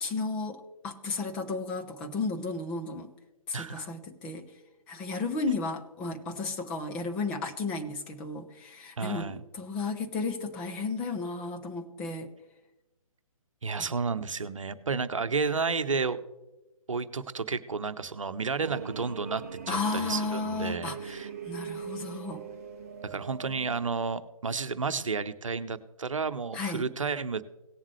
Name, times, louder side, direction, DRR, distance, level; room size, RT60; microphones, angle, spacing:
voice 1, 0.0-3.1 3.5-4.5 4.9-12.3 13.8-13.9 19.7-21.1 21.4-22.4 26.5-26.9, left 3 dB, 5° left, 4 dB, 0.3 m, -33 dB
voice 2, 3.5-3.9 9.0-9.4 13.6-16.2 16.9-21.3 23.0-27.4, right 4 dB, 65° right, 12 dB, 0.8 m, -31 dB
sound 1, 18.6-23.8, right 6 dB, 25° right, 0.7 m, -41 dB
18.0 x 7.3 x 3.1 m, 1.0 s
figure-of-eight pair, 140°, 18 cm